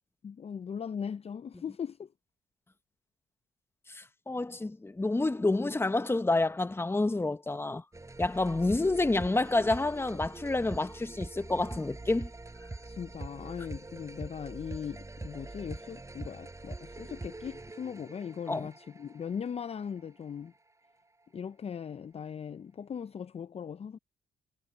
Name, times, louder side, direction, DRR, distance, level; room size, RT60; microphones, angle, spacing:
voice 1, 0.2-2.1 12.8-20.5 21.3-24.0, left 7 dB, 40° left, 0.6 m, -39 dB
voice 2, 3.9-7.8 8.2-12.3 18.5-18.7, left 2 dB, 15° left, 1.1 m, -29 dB
sound 1, 7.9-21.3, right 2 dB, 20° right, 4.9 m, -44 dB
supercardioid pair, 70°, 16 cm